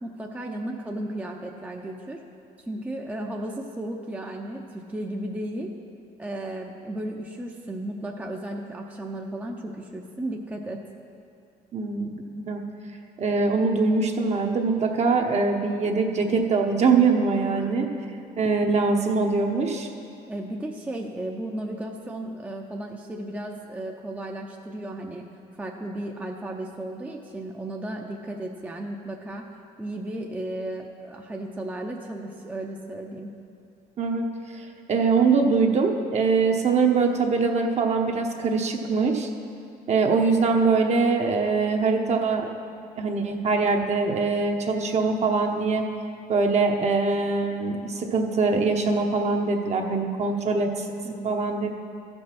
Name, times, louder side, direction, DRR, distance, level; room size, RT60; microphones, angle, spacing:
voice 1, 0.0-2.2 2.7-5.7 6.2-10.8 17.6-17.9 20.3-25.2 25.6-29.5 29.8-33.3 51.0-51.4, right 1 dB, 10° right, 0 dB, 0.7 m, -34 dB
voice 2, 11.7-12.6 13.2-17.9 18.4-19.9 34.0-34.3 34.9-39.3 39.9-42.5 43.0-45.8 46.3-50.9 51.2-51.7, right 4 dB, 40° right, 3 dB, 1.0 m, -23 dB
14.0 x 5.4 x 5.9 m, 2.6 s
cardioid pair, 110°, 17 cm